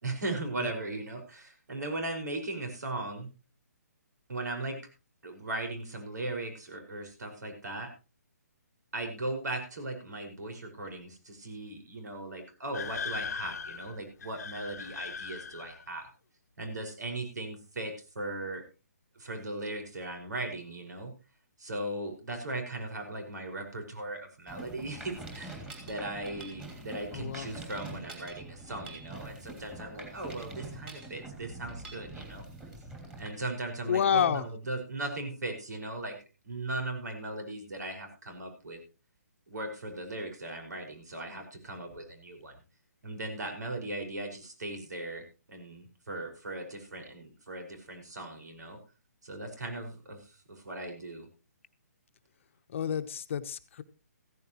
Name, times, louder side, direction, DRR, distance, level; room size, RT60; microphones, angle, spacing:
voice 1, 0.0-3.3 4.3-4.8 5.2-7.9 8.9-16.1 16.6-18.6 19.2-21.1 21.6-32.5 33.2-36.2 36.4-38.8 39.5-42.6 43.0-48.8 49.2-51.3, right 2 dB, 75° right, 5 dB, 5.5 m, -38 dB
sound 1, 12.7-15.9, left 6 dB, 70° left, 1.0 m, -39 dB
Mechanisms, 24.5-33.3, right 2 dB, 10° right, 2.9 m, -45 dB
voice 2, 27.1-27.5 33.9-34.4 41.3-41.4 52.7-53.8, left 8 dB, 45° left, 9 dB, 1.0 m, -29 dB
15.5 x 14.5 x 3.1 m, 0.31 s
hypercardioid pair, 155°, 9 cm